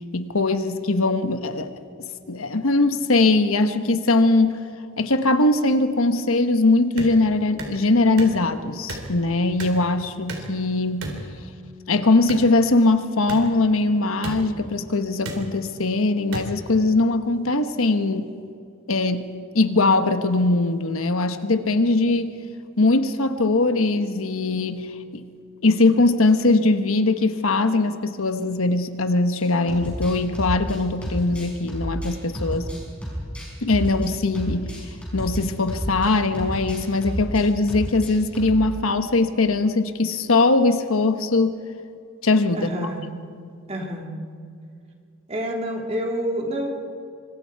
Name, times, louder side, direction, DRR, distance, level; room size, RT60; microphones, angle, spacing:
voice 1, 0.1-1.7 2.3-4.6 5.0-11.1 11.9-18.3 18.9-22.3 22.8-24.9 25.1-25.2 25.6-32.7 33.6-34.7 35.1-41.6 42.2-42.7, left 2 dB, 85° left, 9 dB, 1.2 m, -21 dB
sound 1, 7.0-7.1 7.6-7.7 8.2-8.4 8.9-9.1 9.6-9.8 10.3-10.5 11.0-11.2 12.3-12.5 13.3-13.4 14.2-14.4 15.2-15.4 16.3-16.5, right 2 dB, 80° right, 3.8 m, -32 dB
sound 2, 29.4-36.1 36.3-37.4 37.7-38.7, equal, 5° left, 6.0 m, -30 dB
voice 2, 42.5-43.0 43.7-44.2 45.3-46.7, equal, 30° right, 0 dB, 2.7 m, -28 dB
26.0 x 25.0 x 4.7 m, 2.3 s
head